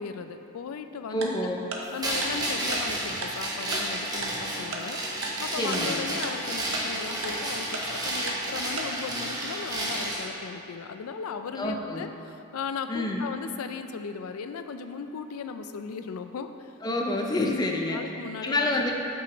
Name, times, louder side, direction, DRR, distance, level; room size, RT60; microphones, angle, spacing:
voice 1, 0.0-1.5 1.9-5.0 5.4-16.7 17.9-18.7, left 5 dB, 90° left, 9 dB, 0.4 m, -37 dB
voice 2, 1.1-1.7 5.5-6.0 11.6-12.0 12.9-13.2 16.8-18.0 18.4-18.9, left 2 dB, 20° left, 0 dB, 0.5 m, -28 dB
Tick-tock, 1.2-1.3 1.7-1.8 2.2-2.3 2.7-2.8 3.2-3.3 3.7-3.8 4.2-4.3 4.7-4.8 5.2-5.3 5.7-5.8 6.2-6.3 6.7-6.8 7.2-7.3 7.7-7.8 8.3-8.4 8.8-8.9, right 4 dB, 60° right, 0.7 m, -34 dB
sound 1, 2.0-10.3, right 1 dB, 20° right, 0.9 m, -31 dB
8.2 x 5.8 x 3.0 m, 2.9 s
head